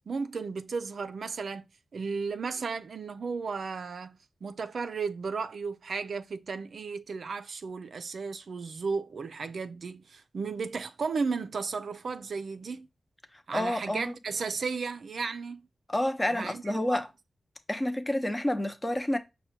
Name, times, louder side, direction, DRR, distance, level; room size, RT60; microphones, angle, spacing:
voice 1, 0.1-1.7 1.9-12.9 13.5-15.7 16.3-17.0, right 4 dB, 75° right, 0.4 m, -34 dB
voice 2, 13.5-14.1 15.9-17.1 17.7-19.2, left 1 dB, 20° left, 0.7 m, -29 dB
5.4 x 2.2 x 4.3 m
cardioid pair, 65°, 0 cm